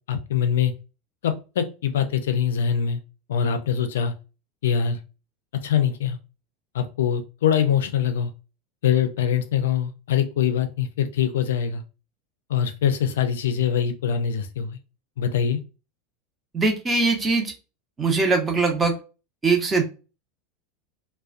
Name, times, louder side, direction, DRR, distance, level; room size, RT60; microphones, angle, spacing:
voice 1, 0.1-0.7 1.2-3.0 3.3-4.1 4.6-5.0 5.6-6.2 6.7-8.3 8.8-11.8 12.5-14.8 15.2-15.6, left 8 dB, 75° left, 8 dB, 0.4 m, -23 dB
voice 2, 16.5-17.5 18.0-18.9 19.4-19.8, right 3 dB, 25° right, 3 dB, 0.7 m, -21 dB
2.3 x 2.2 x 2.4 m, 0.31 s
hypercardioid pair, 85°, 0 cm